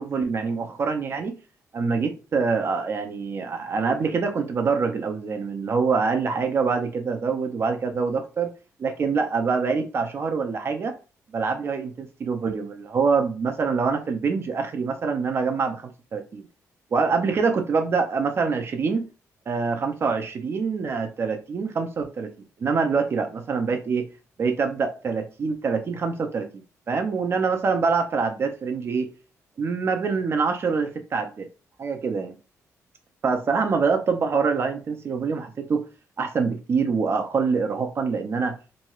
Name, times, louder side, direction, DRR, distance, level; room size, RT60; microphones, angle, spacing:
voice 1, 0.0-1.4 1.7-8.5 8.8-10.9 11.3-16.4 16.9-19.1 19.5-22.3 22.6-24.1 24.4-26.5 26.9-29.1 29.6-31.5 31.8-32.4 33.2-35.8 36.2-38.6, right 5 dB, 45° right, 0.4 m, -25 dB
3.0 x 2.6 x 2.3 m
cardioid pair, 90°, 6 cm